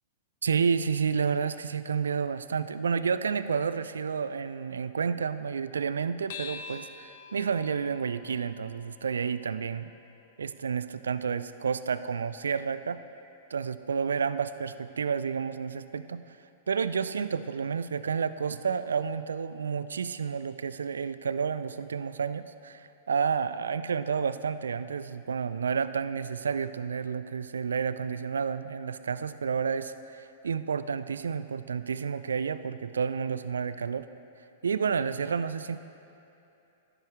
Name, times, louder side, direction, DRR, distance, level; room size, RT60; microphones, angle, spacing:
voice 1, 0.4-9.9 10.4-13.0 13.5-16.2 16.7-34.1 34.6-35.8, right 6 dB, 75° right, 14 dB, 0.3 m, -30 dB
sound 1, 6.3-11.1, left 6 dB, 55° left, 0.6 m, -47 dB
13.0 x 11.0 x 3.1 m, 2.8 s
figure-of-eight pair, 100°, 0 cm